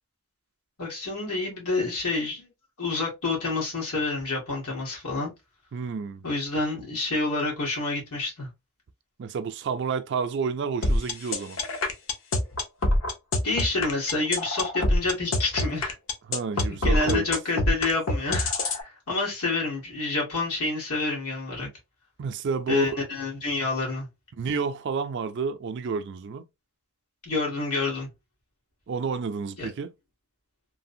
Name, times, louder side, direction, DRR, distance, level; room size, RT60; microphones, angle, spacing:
voice 1, 0.8-2.5 2.8-5.3 6.2-8.5 13.4-15.9 16.7-21.7 22.7-24.1 27.2-28.1 29.6-29.7, left 3 dB, 90° left, 1.5 m, -28 dB
voice 2, 5.7-6.2 9.2-11.6 16.3-17.2 22.2-23.0 24.3-26.4 28.9-29.9, right 5 dB, 50° right, 0.4 m, -30 dB
sound 1, 10.8-18.8, left 2 dB, 60° left, 0.6 m, -25 dB
3.2 x 2.1 x 2.6 m
head